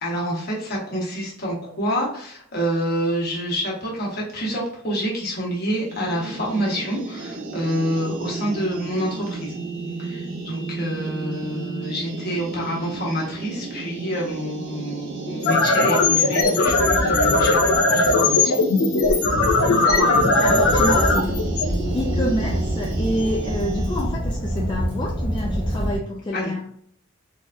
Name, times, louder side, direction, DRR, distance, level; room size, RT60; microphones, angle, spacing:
voice 1, 0.0-9.6 10.0-18.6 26.3-26.5, equal, 45° left, 1.2 m, -27 dB
sound 1, 5.8-24.1, right 3 dB, 55° right, 0.5 m, -33 dB
sound 2, 15.3-22.4, left 2 dB, 80° left, 0.6 m, -19 dB
voice 2, 19.5-26.7, left 1 dB, 20° left, 0.3 m, -28 dB
Fire, 20.6-26.0, right 1 dB, 20° right, 0.8 m, -26 dB
3.9 x 2.5 x 2.2 m
head